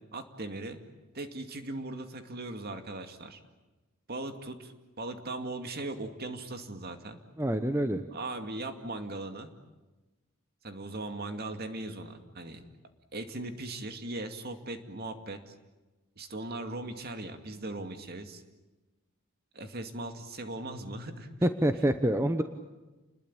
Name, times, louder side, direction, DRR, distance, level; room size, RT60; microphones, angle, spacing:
voice 1, 0.1-0.8 1.1-3.4 4.1-4.7 5.0-7.2 8.1-9.5 10.6-12.6 13.1-15.5 16.2-18.4 19.5-21.3, right 2 dB, 45° right, 7 dB, 2.4 m, -39 dB
voice 2, 7.4-8.0 21.4-22.4, right 1 dB, 10° right, 8 dB, 1.0 m, -26 dB
29.5 x 21.0 x 8.9 m, 1.1 s
head